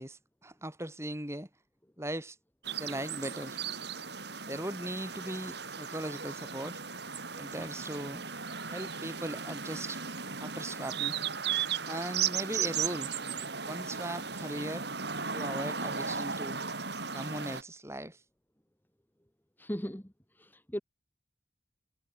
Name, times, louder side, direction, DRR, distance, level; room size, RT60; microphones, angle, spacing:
voice 1, 0.0-1.5 2.0-2.4 2.8-3.6 4.4-6.8 7.4-8.2 8.7-10.0 10.4-11.2 11.9-13.1 13.7-14.9 15.3-16.6 17.1-18.2, right 1 dB, 15° right, 5.2 m, -38 dB
sound 1, 2.6-17.6, right 6 dB, 55° right, 4.2 m, -36 dB
voice 2, 19.6-20.0 20.4-20.8, equal, 10° left, 1.6 m, -37 dB
head